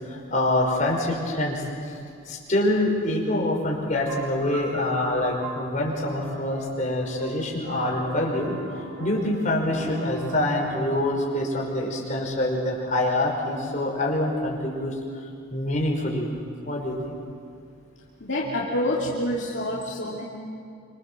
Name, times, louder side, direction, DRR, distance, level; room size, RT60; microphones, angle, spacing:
voice 1, 0.1-1.6 2.3-8.6 9.0-14.9 15.5-16.3 16.6-17.2, left 1 dB, 35° left, -2 dB, 5.5 m, -25 dB
sound 1, 4.1-11.1, right 1 dB, 55° right, 5.9 m, -37 dB
voice 2, 18.2-20.2, left 1 dB, 55° left, -5 dB, 2.8 m, -27 dB
28.0 x 25.5 x 7.6 m, 2.3 s
head